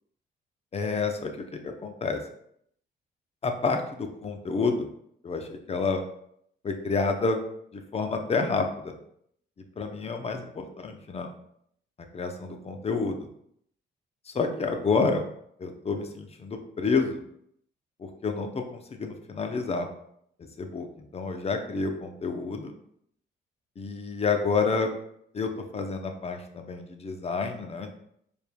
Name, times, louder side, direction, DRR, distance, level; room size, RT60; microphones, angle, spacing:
voice 1, 0.7-2.2 3.4-4.9 5.2-6.0 6.6-7.4 7.7-8.9 9.8-11.3 12.1-13.3 14.3-15.3 15.6-17.2 18.0-19.9 20.6-20.9 21.1-22.7 23.8-24.9 25.3-27.9, left 4 dB, 30° left, 5 dB, 0.6 m, -29 dB
4.4 x 3.5 x 2.2 m, 0.70 s
cardioid pair, 90°, 20 cm